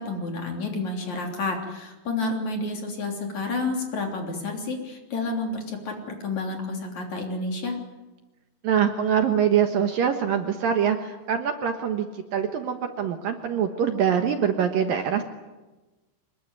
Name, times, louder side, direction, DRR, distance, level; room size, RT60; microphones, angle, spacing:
voice 1, 0.0-7.8, left 3 dB, 45° left, 2 dB, 4.3 m, -30 dB
voice 2, 8.6-15.2, right 8 dB, 65° right, 6 dB, 2.6 m, -24 dB
25.0 x 22.0 x 9.8 m, 1.1 s
omnidirectional pair, 5.1 m